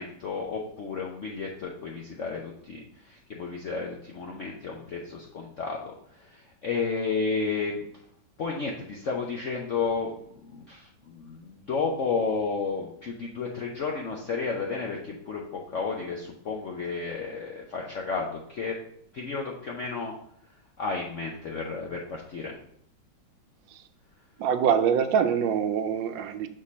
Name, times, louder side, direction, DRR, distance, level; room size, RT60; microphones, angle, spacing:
voice 1, 0.0-7.9 8.4-18.8 19.1-20.1 20.8-22.5, left 4 dB, 70° left, -1 dB, 0.7 m, -32 dB
voice 2, 24.4-26.5, right 7 dB, 75° right, 9 dB, 1.2 m, -24 dB
6.5 x 3.7 x 4.1 m, 0.68 s
omnidirectional pair, 2.2 m